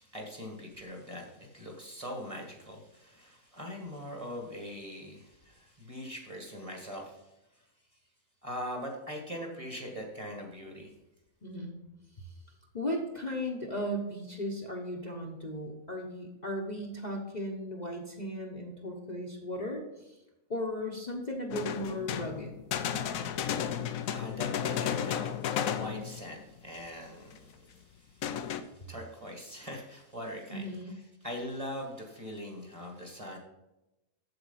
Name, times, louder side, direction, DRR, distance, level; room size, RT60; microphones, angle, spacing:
voice 1, 0.0-7.7 8.4-10.9 23.2-30.9 31.2-33.4, equal, 25° right, 1 dB, 1.8 m, -42 dB
voice 2, 11.4-11.8 12.2-12.3 12.7-20.1 20.5-22.6 30.5-30.9, equal, 35° left, -1 dB, 1.1 m, -36 dB
sound 1, 21.5-26.3 26.7-26.8 27.4-27.5 28.2-28.6, left 9 dB, 75° left, 1.0 m, -33 dB
7.9 x 7.3 x 5.7 m, 0.96 s
omnidirectional pair, 1.5 m